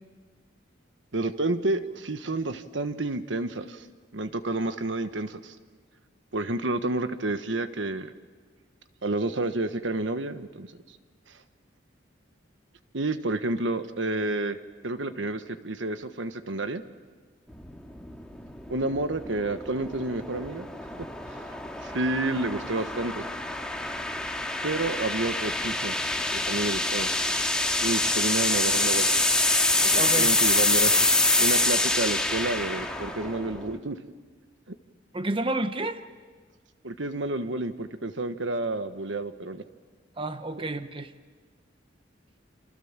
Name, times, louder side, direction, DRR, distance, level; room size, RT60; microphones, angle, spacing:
voice 1, 1.1-3.8 4.1-5.5 6.3-8.1 9.0-10.7 12.9-14.6 14.8-16.8 18.7-20.7 21.3-21.4 21.8-23.2 24.6-26.0 26.3-27.1 27.8-29.1 29.8-31.1 31.4-34.0 34.7-34.8 36.8-39.6, right 2 dB, 80° right, 10 dB, 1.3 m, -30 dB
sound 1, 17.5-33.8, left 2 dB, 5° left, 1.9 m, -26 dB
voice 2, 29.9-30.4 35.1-36.0 40.2-41.1, right 2 dB, 30° right, 10 dB, 0.9 m, -30 dB
28.5 x 28.0 x 7.4 m, 1.5 s
head